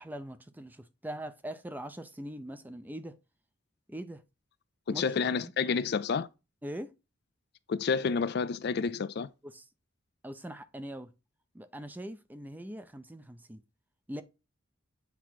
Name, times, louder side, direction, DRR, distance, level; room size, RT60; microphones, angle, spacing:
voice 1, 0.0-3.2 3.9-4.2 4.9-5.1 5.4-5.5 6.6-6.9 9.4-9.7 10.2-11.1 11.5-13.6 14.1-14.2, right 1 dB, 10° right, 0.6 m, -42 dB
voice 2, 4.9-6.3 7.7-9.3, left 5 dB, 55° left, 0.4 m, -29 dB
8.3 x 3.0 x 5.8 m
head